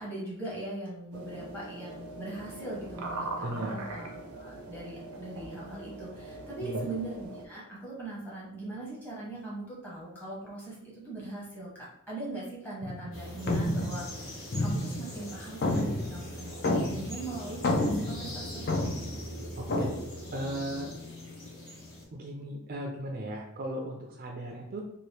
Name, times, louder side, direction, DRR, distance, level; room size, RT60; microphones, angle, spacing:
voice 1, 0.0-11.7 12.1-18.7, right 2 dB, 10° left, -6 dB, 1.1 m, -40 dB
sound 1, 1.1-7.4, right 2 dB, 90° right, 0.6 m, -41 dB
voice 2, 3.4-3.8 6.6-6.9 19.5-19.9 20.3-20.9 22.1-24.8, right 1 dB, 45° right, 1 dB, 0.4 m, -36 dB
sound 2, 12.8-13.1 13.5-15.3 15.6-17.2 17.5-19.2 19.7-20.0, left 1 dB, 50° left, 0.5 m, -29 dB
sound 3, 13.1-22.0, equal, 70° left, 1.1 m, -42 dB
2.8 x 2.5 x 3.2 m, 0.76 s
head